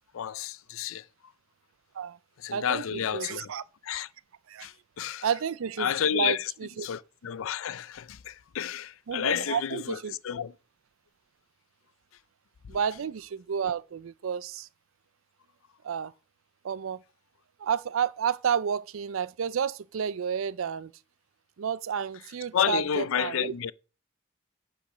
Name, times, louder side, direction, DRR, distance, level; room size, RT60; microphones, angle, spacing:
voice 1, 0.1-1.1 2.4-3.5 3.8-4.1 4.6-5.3 5.8-6.5 6.8-10.5 12.6-12.8 22.5-23.7, left 9 dB, 80° left, 0.4 m, -30 dB
voice 2, 2.5-3.6 4.5-4.7 5.2-5.9 6.1-6.9 9.1-10.1 12.7-14.7 15.8-16.1 16.6-17.0 17.6-20.9 21.6-23.5, right 7 dB, 80° right, 0.4 m, -31 dB
8.4 x 5.0 x 6.0 m
head